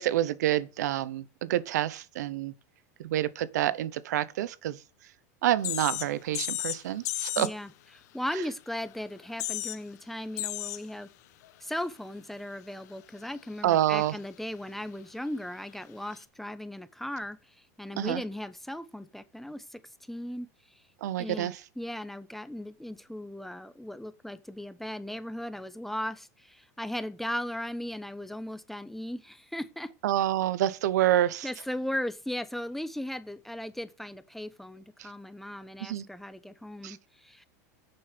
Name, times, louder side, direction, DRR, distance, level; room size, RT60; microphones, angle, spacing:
voice 1, 0.0-2.5 3.0-4.8 5.4-7.5 13.6-14.1 18.0-18.2 21.0-21.6 30.0-31.5 35.8-36.1 36.8-37.0, right 13 dB, 80° right, 0.9 m, -27 dB
sound 1, 5.6-6.1 6.3-6.8 7.1-7.5 8.9-9.0 9.2-9.8 10.4-10.8 11.4-11.5 16.1-16.2, left 15 dB, 70° left, 1.4 m, -33 dB
voice 2, 7.4-7.7 8.1-11.1 11.6-19.8 20.1-20.8 21.2-29.9 31.4-37.5, left 1 dB, ahead, 0.9 m, -37 dB
9.8 x 7.0 x 5.2 m
supercardioid pair, 120°, 9 cm